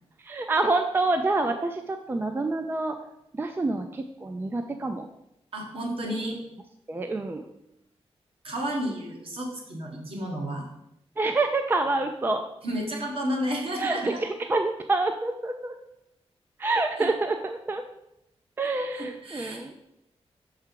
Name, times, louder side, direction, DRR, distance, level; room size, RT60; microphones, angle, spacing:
voice 1, 0.2-3.0 3.3-5.1 6.9-7.4 11.2-12.4 13.8-15.7 16.6-17.8 18.6-19.7, right 2 dB, 20° right, 6 dB, 0.3 m, -27 dB
voice 2, 5.5-6.4 8.4-10.6 12.6-14.2 17.0-17.1 18.9-19.6, equal, 60° right, -1 dB, 1.5 m, -31 dB
5.8 x 4.8 x 4.5 m, 0.84 s
wide cardioid pair, 170°, 11 cm